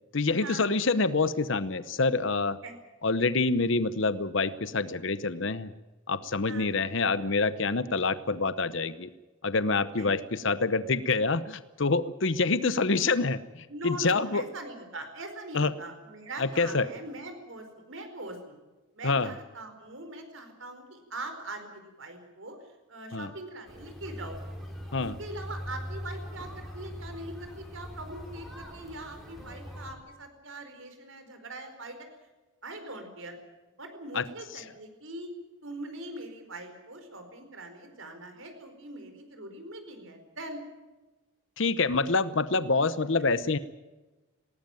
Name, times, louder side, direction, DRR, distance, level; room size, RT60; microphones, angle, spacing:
voice 1, 0.1-2.6 3.0-5.7 6.1-9.1 9.4-14.4 15.5-15.7 16.4-16.9 19.0-19.3 23.1-23.3 24.9-25.2 34.1-34.3 34.5-34.6 41.6-43.6, left 3 dB, 60° left, 14 dB, 0.8 m, -26 dB
voice 2, 6.5-6.9 9.9-10.2 13.7-18.5 18.9-22.6 22.9-24.4 25.0-32.0 32.6-33.4 33.8-35.3 35.6-40.6, right 2 dB, 65° right, 7 dB, 4.7 m, -42 dB
sound 1, 23.7-29.9, equal, ahead, 4.4 m, -41 dB
19.5 x 19.0 x 9.1 m, 1.1 s
head